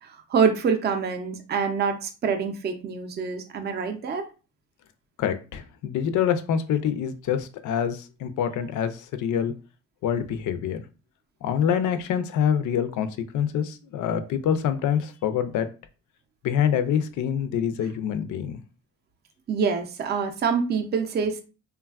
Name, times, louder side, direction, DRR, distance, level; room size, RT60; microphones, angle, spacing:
voice 1, 0.0-4.3 19.5-21.4, right 6 dB, 35° right, 6 dB, 0.4 m, -26 dB
voice 2, 5.2-9.5 10.0-10.8 11.4-13.1 13.3-15.7 16.4-18.6, left 8 dB, 85° left, 11 dB, 0.5 m, -26 dB
3.2 x 2.2 x 2.3 m, 0.33 s
cardioid pair, 110°, 30 cm